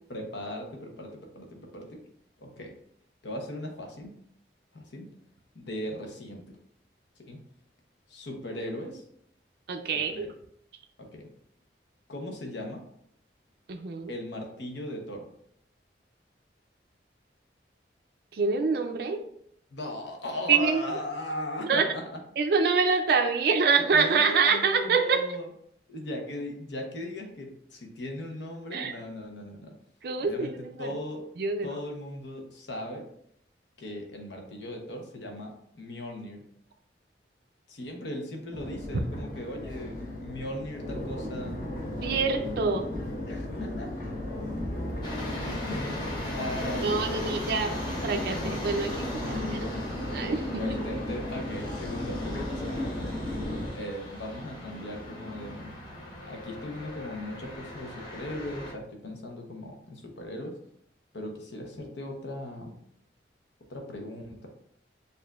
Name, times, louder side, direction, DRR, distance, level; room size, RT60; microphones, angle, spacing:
voice 1, 0.1-2.0 2.4-2.7 3.2-4.1 4.7-5.1 5.5-6.4 7.3-7.4 8.1-9.0 10.1-10.3 11.0-11.2 12.1-12.8 14.1-15.2 19.7-22.2 23.9-25.5 25.9-29.7 30.2-31.2 31.6-33.1 33.8-36.4 37.7-41.6 43.3-43.9 45.4-46.1 46.3-47.6 49.1-49.7 50.5-53.1 53.7-55.7 56.3-60.5 61.1-62.7 63.7-64.5, left 1 dB, 75° left, 2 dB, 0.9 m, -38 dB
voice 2, 9.7-10.3 13.7-14.1 18.3-19.2 20.5-20.8 21.7-21.8 22.4-25.2 28.7-28.9 30.0-30.9 31.4-31.7 42.0-42.9 46.8-47.7 48.0-49.4 49.7-49.8 50.1-50.4, right 5 dB, 55° right, 4 dB, 0.4 m, -25 dB
Crowd, 38.5-53.7, left 1 dB, 45° left, 1.1 m, -35 dB
sound 1, 45.0-58.7, left 1 dB, 25° left, 1.1 m, -39 dB
6.8 x 2.6 x 2.4 m, 0.70 s
head